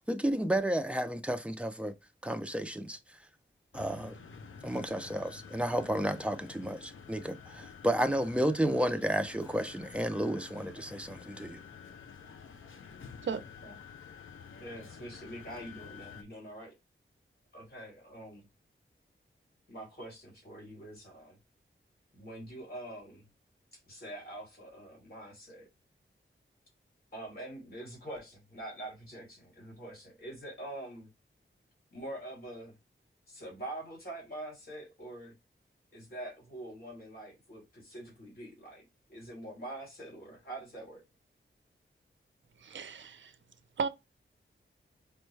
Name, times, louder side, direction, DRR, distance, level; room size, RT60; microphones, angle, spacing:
voice 1, 0.1-1.9 2.2-3.0 3.7-4.2 4.6-11.6, right 1 dB, 5° right, 0.5 m, -32 dB
sound 1, 3.7-16.2, left 6 dB, 75° left, 0.6 m, -50 dB
voice 2, 14.6-16.7 17.5-18.4 19.7-21.4 22.2-23.1 23.9-25.7 27.1-28.3 28.6-31.1 31.9-32.7 33.3-35.3 35.9-41.0, right 1 dB, 50° left, 2.8 m, -45 dB
voice 3, 42.6-43.3 43.8-43.9, right 5 dB, 65° right, 0.5 m, -34 dB
5.2 x 2.2 x 3.2 m
wide cardioid pair, 85°, 21 cm